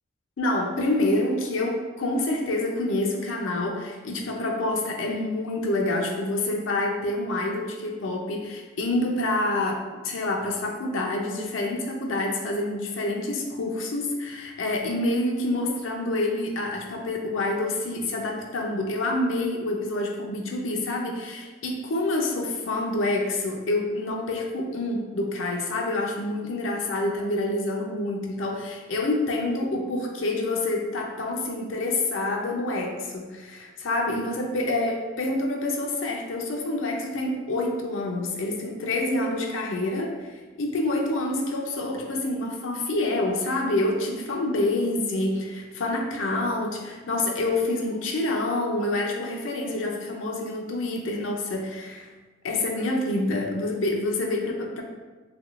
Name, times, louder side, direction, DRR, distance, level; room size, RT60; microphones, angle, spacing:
voice 1, 0.4-52.1 52.4-54.8, left 2 dB, 85° left, 1 dB, 0.5 m, -27 dB
3.5 x 3.0 x 2.4 m, 1.2 s
head